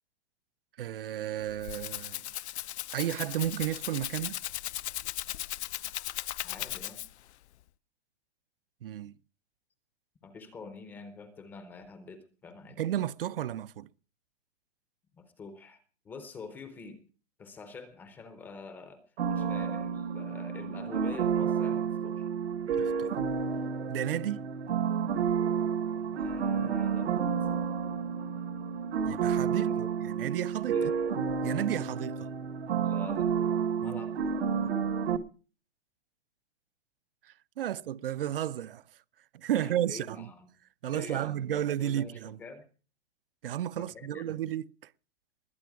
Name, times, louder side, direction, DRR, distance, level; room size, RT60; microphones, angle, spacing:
voice 1, 0.8-2.2 2.9-4.4 8.8-9.1 12.8-13.9 22.8-23.2 23.9-24.4 29.0-30.9 31.4-32.3 33.8-34.0 37.2-38.8 39.3-40.3 40.8-42.4 43.4-44.9, right 11 dB, 55° right, 0.6 m, -33 dB
Rattle (instrument), 1.4-7.3, left 13 dB, 75° left, 0.6 m, -37 dB
voice 2, 6.4-7.0 10.2-12.8 15.2-17.0 17.4-19.0 19.3-22.3 26.1-27.2 29.5-29.9 30.7-30.9 32.8-33.3 33.8-34.3 39.6-40.5 40.9-42.6 43.7-44.4, left 4 dB, 5° left, 0.6 m, -46 dB
sound 1, 19.2-35.2, right 7 dB, 70° right, 1.6 m, -30 dB
21.0 x 8.5 x 4.7 m
supercardioid pair, 175°, 34 cm